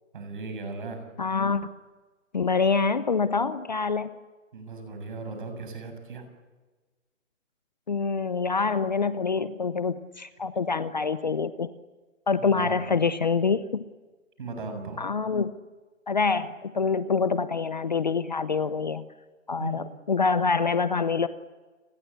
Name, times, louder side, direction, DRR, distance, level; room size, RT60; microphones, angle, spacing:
voice 1, 0.1-1.0 4.5-6.2 12.3-13.0 14.4-15.0 19.6-19.9, right 3 dB, 40° right, 6 dB, 7.1 m, -37 dB
voice 2, 1.2-1.6 2.3-4.1 7.9-11.7 12.3-13.8 15.0-15.5 16.1-19.0 19.5-21.3, left 5 dB, 35° left, 13 dB, 0.7 m, -26 dB
29.5 x 20.5 x 8.4 m, 1.3 s
hypercardioid pair, 175°, 39 cm